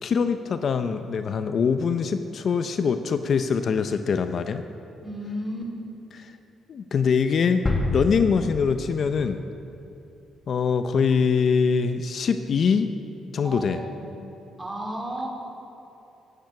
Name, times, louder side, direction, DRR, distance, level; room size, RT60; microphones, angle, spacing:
voice 1, 0.0-4.6 6.1-6.3 6.7-7.6 7.9-9.4 10.5-12.9 13.3-13.8, left 6 dB, 55° left, 9 dB, 0.6 m, -23 dB
voice 2, 5.0-5.7 13.4-14.0 14.6-15.3, right 1 dB, 15° right, -1 dB, 3.5 m, -33 dB
sound 1, 7.7-9.6 10.0-10.1, left 2 dB, 25° left, 1.7 m, -29 dB
15.0 x 10.5 x 5.9 m, 2.9 s
cardioid pair, 90°, 0 cm